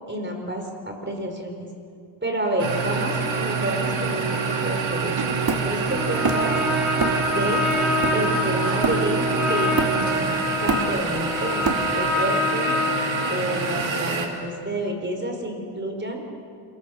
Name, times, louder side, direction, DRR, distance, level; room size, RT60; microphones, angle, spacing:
voice 1, 0.1-1.7 2.2-5.2 5.6-6.6 7.2-7.6 8.1-10.4 10.6-12.8 13.3-16.2, right 1 dB, 20° right, 3 dB, 4.6 m, -29 dB
sound 1, 2.6-14.3, right 5 dB, 65° right, 3.0 m, -26 dB
Hammer, 5.5-6.6 7.0-7.3 7.7-9.3 9.8-10.2 10.5-12.2, right 4 dB, 45° right, 2.4 m, -27 dB
Trumpet, 5.9-13.5, left 2 dB, ahead, 5.5 m, -26 dB
26.5 x 22.5 x 6.4 m, 2.3 s
cardioid pair, 95°, 49 cm